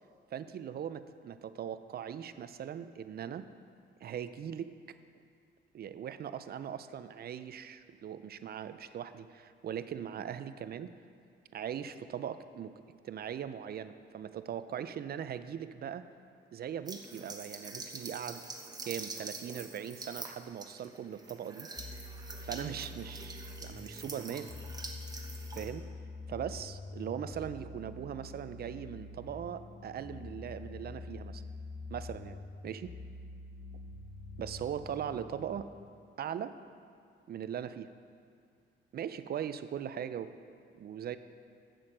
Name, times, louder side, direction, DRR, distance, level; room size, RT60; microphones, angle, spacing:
voice 1, 0.3-3.5 4.0-4.7 5.7-10.9 11.5-12.7 13.0-16.1 16.5-18.4 18.8-21.7 22.4-24.5 25.6-25.9 26.3-31.4 31.9-32.4 32.6-32.9 34.4-35.7 36.2-36.5 37.3-37.9 38.9-40.3 40.7-41.2, right 9 dB, 50° right, 12 dB, 0.5 m, -40 dB
sound 1, 16.9-25.7, right 3 dB, 20° right, 1.2 m, -45 dB
sound 2, 21.8-35.6, left 2 dB, 30° left, 0.6 m, -46 dB
8.2 x 7.8 x 6.5 m, 2.3 s
cardioid pair, 90°, 20 cm